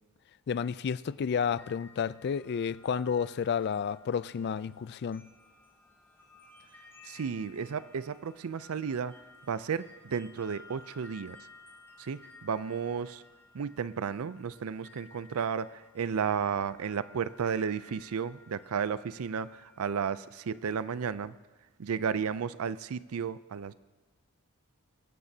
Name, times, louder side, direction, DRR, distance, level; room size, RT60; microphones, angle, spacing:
voice 1, 0.5-5.3, left 7 dB, 50° left, 0.3 m, -31 dB
sound 1, 1.5-20.6, left 3 dB, 10° left, 3.4 m, -57 dB
voice 2, 7.0-9.2 9.5-11.4 12.0-13.2 13.5-21.3 21.8-23.7, right 6 dB, 75° right, 0.4 m, -33 dB
23.0 x 13.5 x 2.8 m
head